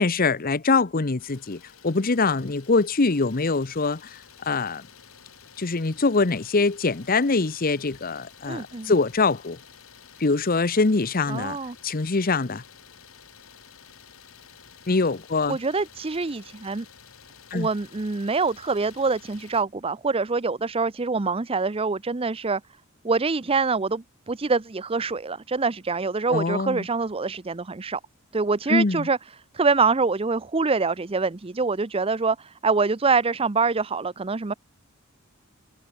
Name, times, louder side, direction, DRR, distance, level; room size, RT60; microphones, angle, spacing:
voice 1, 0.0-4.8 5.6-9.6 10.2-11.6 11.8-12.6 14.9-15.6 17.5-17.7 26.3-26.9 28.7-29.1, left 3 dB, 45° left, 0.9 m, -23 dB
Idling, 1.2-19.6, left 7 dB, 80° left, 4.3 m, -51 dB
voice 2, 8.5-8.9 11.3-11.8 15.5-16.9 17.5-22.6 23.0-28.0 28.3-29.2 29.5-34.5, right 4 dB, 25° right, 0.6 m, -25 dB
head